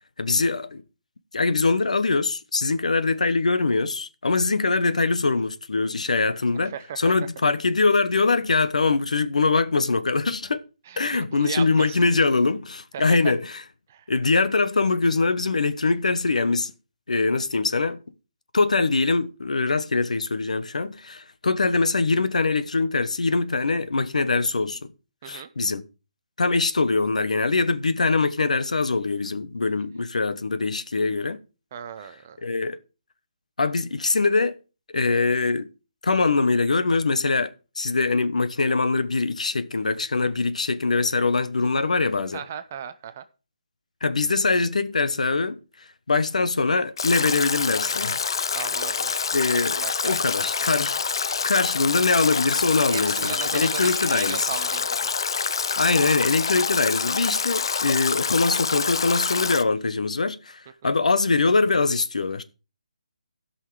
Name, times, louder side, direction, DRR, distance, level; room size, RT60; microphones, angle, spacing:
voice 1, 0.2-0.8 1.3-10.6 11.0-13.6 14.1-16.7 17.1-18.0 18.5-24.9 25.2-25.8 26.4-31.4 32.4-32.8 33.6-34.6 34.9-35.7 36.0-42.4 44.0-48.2 49.3-50.9 51.4-54.5 55.8-62.4, left 3 dB, 75° left, 1.0 m, -23 dB
voice 2, 6.7-7.0 10.9-12.0 12.9-13.2 13.9-14.0 25.2-25.5 31.7-32.4 42.3-43.2 48.5-49.2 49.8-50.2 52.9-55.1, right 8 dB, 20° right, 0.4 m, -36 dB
Stream / Drip / Trickle dribble, 47.0-59.6, left 5 dB, 40° left, 0.5 m, -26 dB
14.5 x 5.6 x 4.7 m
hypercardioid pair, 175°, 4 cm